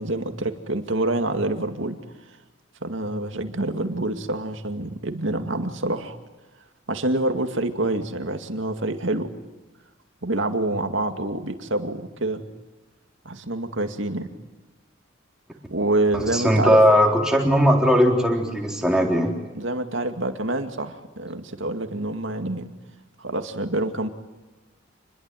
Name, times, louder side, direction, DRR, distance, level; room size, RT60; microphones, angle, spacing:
voice 1, 0.0-2.0 2.8-6.2 6.9-9.3 10.2-12.5 13.2-14.3 15.7-16.8 19.5-22.7 23.2-24.1, right 2 dB, 75° right, 7 dB, 2.3 m, -27 dB
voice 2, 16.1-19.3, equal, 5° right, 0 dB, 3.8 m, -18 dB
27.5 x 21.5 x 9.2 m, 1.2 s
head